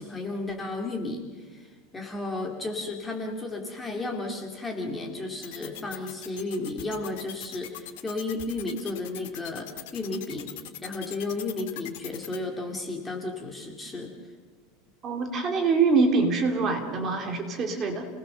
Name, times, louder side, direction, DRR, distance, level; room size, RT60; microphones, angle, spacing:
voice 1, 0.0-10.5 10.8-14.1, left 2 dB, 10° left, 2 dB, 2.2 m, -33 dB
sound 1, 5.4-12.4, left 13 dB, 65° left, 2.0 m, -40 dB
voice 2, 15.0-18.1, right 4 dB, 25° right, 4 dB, 2.6 m, -24 dB
29.5 x 19.5 x 6.7 m, 1.5 s
supercardioid pair, 175°, 0 cm